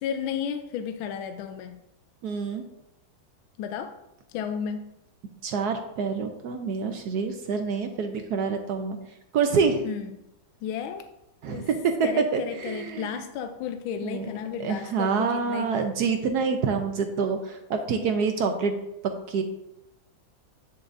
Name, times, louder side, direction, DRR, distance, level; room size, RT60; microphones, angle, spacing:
voice 1, 0.0-1.8 3.6-3.9 4.3-4.9 9.8-10.2 10.6-11.0 11.5-11.7 12.0-15.9, left 8 dB, 80° left, 7 dB, 1.4 m, -33 dB
voice 2, 2.2-2.6 5.4-9.0 9.3-9.8 11.4-12.0 12.3-13.1 14.0-14.2 14.6-18.8 19.3-19.4, right 5 dB, 70° right, 6 dB, 1.0 m, -27 dB
8.7 x 7.0 x 2.6 m, 0.87 s
omnidirectional pair, 2.2 m